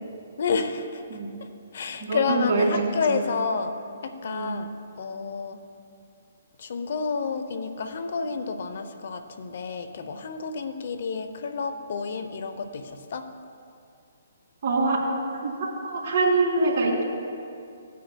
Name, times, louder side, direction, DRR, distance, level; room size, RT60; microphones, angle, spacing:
voice 1, 0.4-1.0 1.7-4.7 5.0-5.6 6.6-13.3, left 5 dB, 60° left, 9 dB, 0.6 m, -30 dB
voice 2, 2.0-2.7 3.1-3.3 4.3-4.6 14.6-15.0 15.4-17.0, right 3 dB, 50° right, -3 dB, 2.4 m, -24 dB
16.5 x 9.3 x 2.2 m, 2.5 s
hypercardioid pair, 150°, 0 cm